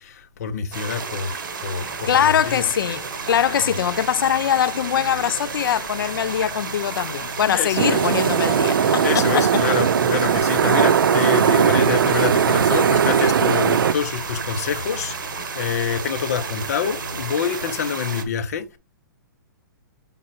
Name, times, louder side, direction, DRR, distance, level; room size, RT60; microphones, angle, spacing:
voice 1, 0.0-2.6 3.7-3.8 7.5-8.0 8.4-18.8, left 7 dB, 45° left, 1.0 m, -27 dB
sound 1, 0.7-18.2, right 5 dB, 65° right, 1.4 m, -32 dB
sound 2, 1.8-17.2, equal, 35° right, 2.9 m, -41 dB
voice 2, 2.1-9.6, left 9 dB, 85° left, 0.4 m, -22 dB
sound 3, 7.7-13.9, right 7 dB, 85° right, 0.6 m, -19 dB
6.3 x 3.7 x 4.3 m
hypercardioid pair, 170°, 11 cm